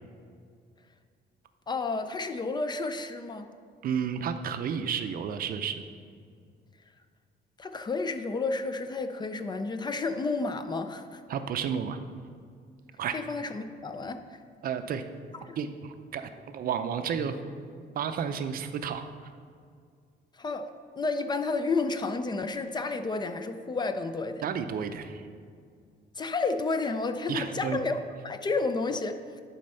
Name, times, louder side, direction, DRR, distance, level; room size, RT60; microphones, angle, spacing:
voice 1, 1.7-3.5 7.6-11.2 13.1-14.2 15.4-15.6 20.4-20.7 21.0-24.4 26.2-29.4, left 3 dB, 25° left, 8 dB, 0.4 m, -31 dB
voice 2, 3.8-5.8 11.3-12.0 13.0-13.2 14.6-15.0 15.6-17.4 18.0-19.0 24.4-25.2 27.3-27.8, right 7 dB, 50° right, 9 dB, 0.5 m, -31 dB
11.0 x 4.3 x 5.5 m, 2.2 s
cardioid pair, 160°, 19 cm